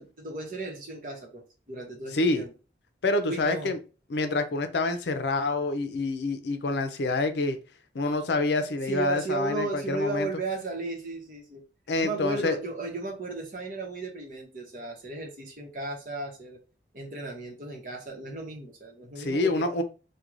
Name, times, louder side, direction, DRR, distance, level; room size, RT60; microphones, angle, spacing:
voice 1, 0.0-2.5 3.2-3.7 8.9-11.6 12.0-16.6 16.9-19.7, right 2 dB, 45° right, 2 dB, 0.9 m, -35 dB
voice 2, 2.1-2.4 3.0-3.8 4.1-7.6 7.9-10.3 11.9-12.6 19.2-19.8, left 2 dB, 75° left, 8 dB, 0.5 m, -27 dB
4.5 x 2.2 x 2.5 m, 0.34 s
head